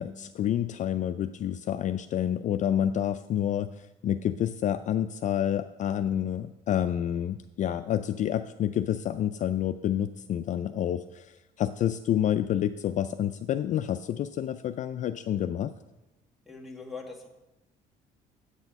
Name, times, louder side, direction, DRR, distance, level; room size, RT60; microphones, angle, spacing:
voice 1, 0.0-15.7, left 10 dB, 45° left, 10 dB, 0.4 m, -29 dB
voice 2, 16.4-17.3, left 4 dB, ahead, 1 dB, 1.8 m, -41 dB
8.3 x 8.1 x 5.3 m, 1.0 s
cardioid pair, 110°, 17 cm